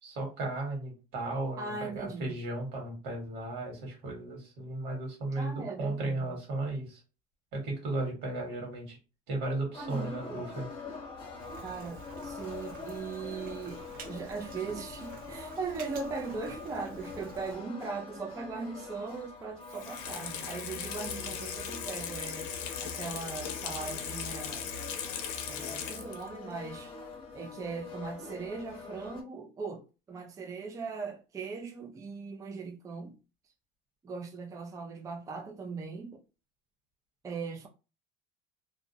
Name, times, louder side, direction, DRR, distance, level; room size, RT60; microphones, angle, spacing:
voice 1, 0.0-7.0 7.5-9.0 9.3-10.6, right 2 dB, 70° right, 1.5 m, -35 dB
voice 2, 1.6-2.4 5.4-6.4 9.8-10.5 11.6-22.5 22.8-24.7 25.5-27.0 27.3-33.2 34.0-36.2 37.2-37.7, right 4 dB, 15° right, 0.3 m, -39 dB
sound 1, 9.7-29.2, left 4 dB, 30° left, 0.8 m, -45 dB
Rain, 11.4-17.6, right 4 dB, 45° right, 0.7 m, -50 dB
Water tap faucet / Sink (filling or washing), 19.6-26.4 26.7-26.8, left 7 dB, 85° left, 0.6 m, -38 dB
2.6 x 2.1 x 2.8 m
cardioid pair, 120°, 19 cm